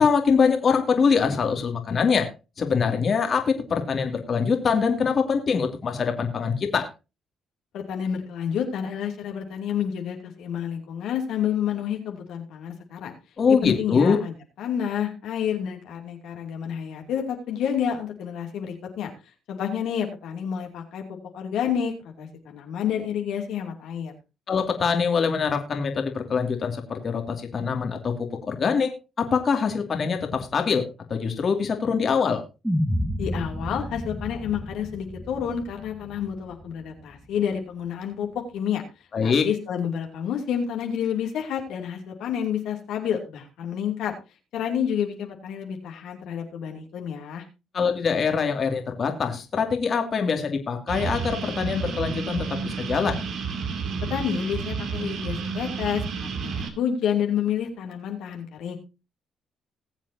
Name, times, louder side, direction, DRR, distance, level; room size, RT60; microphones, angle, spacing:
voice 1, 0.0-2.3 2.6-6.9 13.4-14.2 24.5-28.9 29.2-30.8 31.1-32.4 39.1-39.5 47.7-53.2, left 5 dB, 50° left, 4 dB, 2.4 m, -23 dB
voice 2, 7.7-13.1 13.5-19.1 19.5-24.1 33.2-38.8 39.2-44.2 44.5-47.4 54.1-58.8, left 8 dB, 80° left, 2 dB, 2.7 m, -29 dB
sound 1, 32.6-37.0, equal, 5° right, 2.0 m, -30 dB
sound 2, 50.9-56.7, right 5 dB, 70° right, 2.6 m, -31 dB
20.0 x 7.5 x 2.8 m, 0.28 s
supercardioid pair, 65°, 0 cm